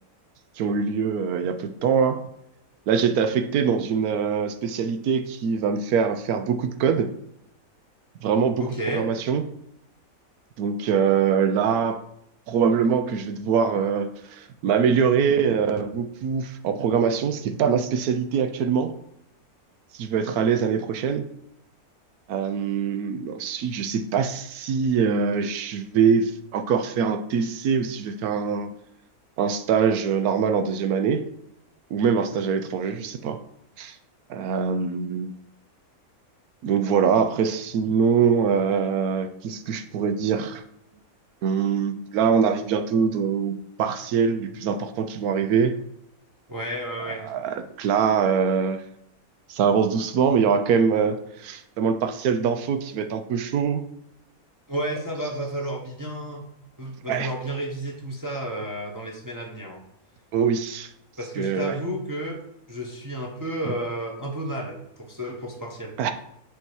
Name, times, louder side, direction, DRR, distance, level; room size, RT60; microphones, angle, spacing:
voice 1, 0.6-2.2 2.9-7.1 8.2-9.4 10.6-12.0 12.5-18.9 19.9-21.3 22.3-28.7 29.4-31.2 31.9-33.4 33.8-34.0 34.3-35.3 36.6-40.6 41.4-45.7 47.2-48.8 49.5-53.8 57.1-57.3 60.3-60.9 61.4-61.8 66.0-66.1, right 6 dB, 85° right, 8 dB, 1.2 m, -23 dB
voice 2, 8.6-9.1 46.5-47.3 54.7-56.5 56.8-59.8 61.2-62.4 62.7-65.9, right 1 dB, 15° right, -1 dB, 0.8 m, -31 dB
8.1 x 2.8 x 6.2 m, 0.79 s
omnidirectional pair, 1.5 m